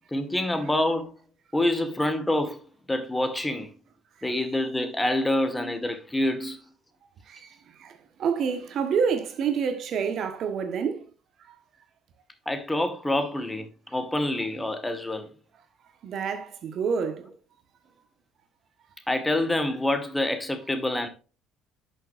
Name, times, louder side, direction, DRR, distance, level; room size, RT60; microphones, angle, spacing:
voice 1, 0.1-1.1 1.5-2.6 2.9-3.7 4.2-6.6 12.5-15.3 19.1-21.1, left 1 dB, 10° left, 1.9 m, -26 dB
voice 2, 7.3-11.1 11.5-11.6 16.0-17.3, right 6 dB, 60° right, 1.4 m, -28 dB
10.5 x 6.6 x 2.6 m
hypercardioid pair, 65°, 0 cm